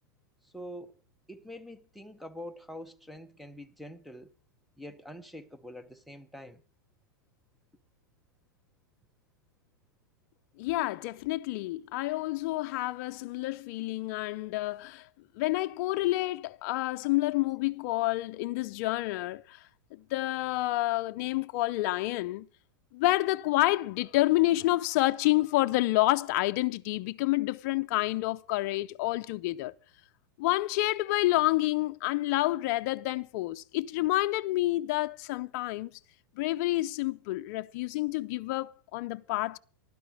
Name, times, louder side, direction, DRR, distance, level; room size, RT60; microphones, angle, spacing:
voice 1, 0.4-1.0 1.3-4.3 4.8-6.6, equal, ahead, 0.9 m, -45 dB
voice 2, 10.6-15.1 15.4-19.6 19.9-22.5 22.9-29.7 30.4-35.9 36.4-39.6, left 18 dB, 50° left, 0.6 m, -29 dB
15.5 x 12.0 x 4.8 m
hypercardioid pair, 140°, 11 cm